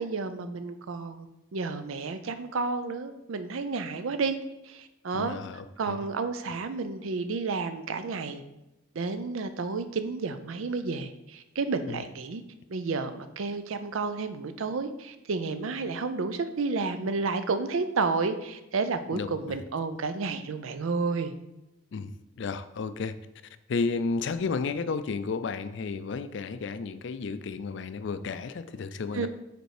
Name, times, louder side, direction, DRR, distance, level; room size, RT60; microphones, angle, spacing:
voice 1, 0.0-4.4 4.6-5.4 5.8-8.4 8.9-12.4 12.7-21.3 29.1-29.3, right 4 dB, 85° right, 10 dB, 0.5 m, -31 dB
voice 2, 5.1-6.0 11.9-12.0 19.1-19.6 21.9-23.1 23.7-29.3, left 4 dB, 60° left, 12 dB, 0.4 m, -32 dB
5.2 x 4.4 x 4.8 m, 0.93 s
head